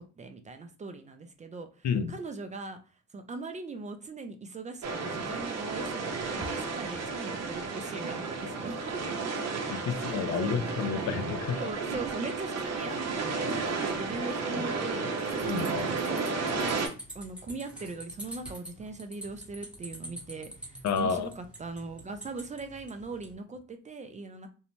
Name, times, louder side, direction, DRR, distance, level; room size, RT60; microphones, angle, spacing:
voice 1, 0.0-2.8 3.1-9.0 9.9-10.5 11.6-16.3 17.1-24.5, right 3 dB, 25° right, 0.4 m, -40 dB
sound 1, 4.8-16.9, right 4 dB, 60° right, 0.7 m, -33 dB
voice 2, 9.7-11.6 15.4-15.6 20.8-21.3, left 6 dB, 65° left, 0.5 m, -30 dB
sound 2, 15.2-23.3, right 1 dB, 5° right, 0.9 m, -46 dB
2.7 x 2.0 x 2.9 m
cardioid pair, 90°, 30 cm